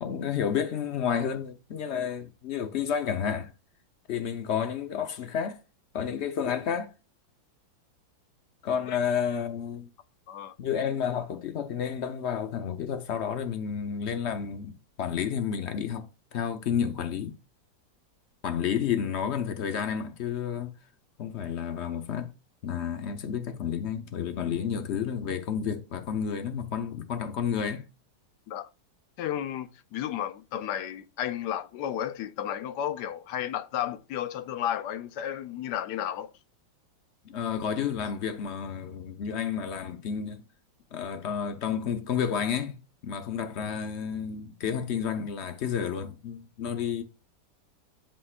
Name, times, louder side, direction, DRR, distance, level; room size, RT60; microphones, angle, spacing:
voice 1, 0.0-3.5 4.1-5.6 5.9-6.9 8.6-9.9 10.6-14.7 15.0-17.3 18.4-20.7 21.2-22.3 22.6-27.8 37.2-40.4 40.9-42.8 43.0-47.0, left 7 dB, 60° left, 0.7 m, -31 dB
voice 2, 29.2-36.3, left 10 dB, 75° left, 1.1 m, -33 dB
11.5 x 4.4 x 2.4 m
omnidirectional pair, 2.0 m